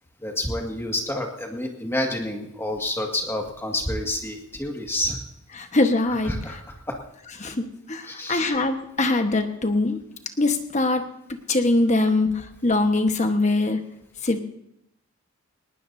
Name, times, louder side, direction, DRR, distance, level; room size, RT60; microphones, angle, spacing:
voice 1, 0.2-5.2 6.2-7.0 8.0-8.5, left 1 dB, 10° left, 1 dB, 1.9 m, -29 dB
voice 2, 5.6-6.3 7.4-10.0 10.4-11.0 11.5-13.8 14.2-14.4, left 2 dB, 30° left, 6 dB, 1.3 m, -22 dB
19.5 x 18.5 x 2.7 m, 0.81 s
head